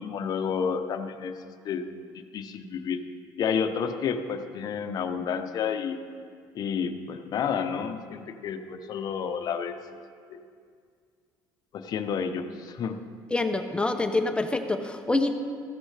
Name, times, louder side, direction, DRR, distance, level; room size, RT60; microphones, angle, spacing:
voice 1, 0.0-1.4 1.6-1.8 2.3-3.0 3.4-6.0 6.5-9.8 10.3-10.4 11.7-13.0, left 6 dB, 50° left, 7 dB, 0.8 m, -30 dB
voice 2, 13.3-15.3, left 2 dB, 10° left, 6 dB, 0.7 m, -26 dB
14.0 x 13.0 x 3.3 m, 2.1 s
cardioid pair, 110°, 8 cm